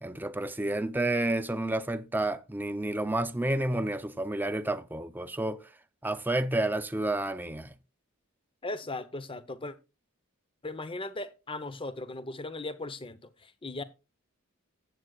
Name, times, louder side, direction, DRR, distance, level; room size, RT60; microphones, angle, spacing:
voice 1, 0.0-5.6 6.0-7.7, right 1 dB, 10° right, 0.6 m, -30 dB
voice 2, 8.6-9.7 10.6-13.8, left 2 dB, 25° left, 0.8 m, -38 dB
16.0 x 7.7 x 2.4 m
head